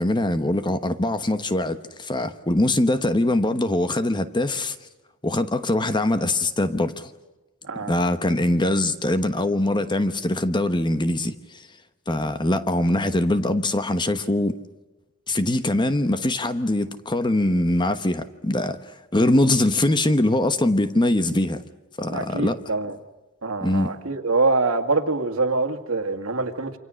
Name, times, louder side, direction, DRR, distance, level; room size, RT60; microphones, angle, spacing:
voice 1, 0.0-4.7 5.2-7.1 7.9-11.3 12.1-14.6 15.3-18.8 19.1-21.6 22.0-22.6 23.6-23.9, left 1 dB, 20° left, 1.1 m, -22 dB
voice 2, 22.1-23.0 23.4-26.8, right 3 dB, 70° right, 2.1 m, -24 dB
28.0 x 25.5 x 6.4 m
head